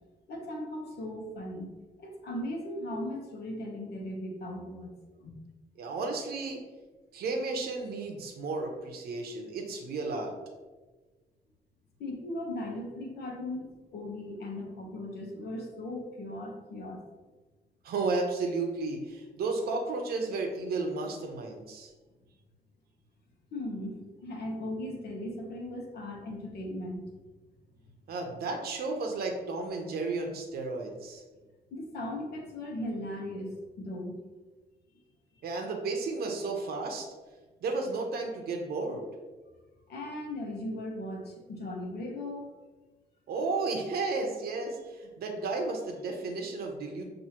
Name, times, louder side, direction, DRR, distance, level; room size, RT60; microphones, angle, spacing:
voice 1, 0.3-1.7 2.0-4.9 5.2-5.4 12.0-17.0 23.5-27.1 31.7-34.2 39.9-42.4, left 1 dB, 80° left, 1 dB, 1.0 m, -38 dB
voice 2, 5.8-6.6 7.1-10.3 17.8-21.9 28.1-31.2 35.4-37.1 37.6-39.1 43.3-47.0, right 3 dB, 75° right, 2 dB, 0.7 m, -33 dB
6.1 x 2.6 x 2.9 m, 1.2 s
cardioid pair, 125°, 16 cm